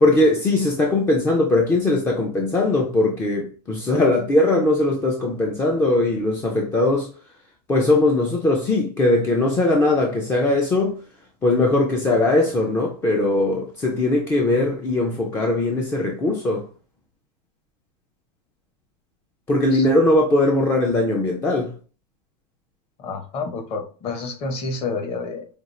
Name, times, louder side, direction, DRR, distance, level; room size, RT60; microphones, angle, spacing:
voice 1, 0.0-7.1 7.7-11.0 11.4-16.7 19.5-21.7, left 2 dB, 10° left, 0.4 m, -20 dB
voice 2, 23.0-25.5, left 4 dB, 30° left, 0.8 m, -29 dB
5.0 x 2.3 x 3.0 m
supercardioid pair, 160°, 21 cm